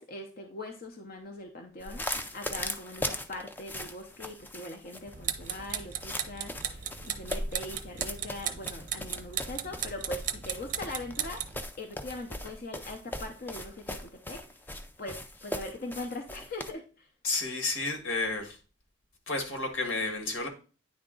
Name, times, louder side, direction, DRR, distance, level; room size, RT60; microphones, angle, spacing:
voice 1, 0.0-11.4 11.8-14.6 15.0-17.1, left 2 dB, 45° left, 0.7 m, -41 dB
sound 1, 1.8-16.7, left 1 dB, 10° left, 0.4 m, -39 dB
sound 2, 5.1-11.6, right 9 dB, 40° right, 0.6 m, -37 dB
voice 2, 17.2-18.6 19.3-20.5, left 3 dB, 80° left, 1.8 m, -31 dB
9.5 x 3.6 x 3.8 m
head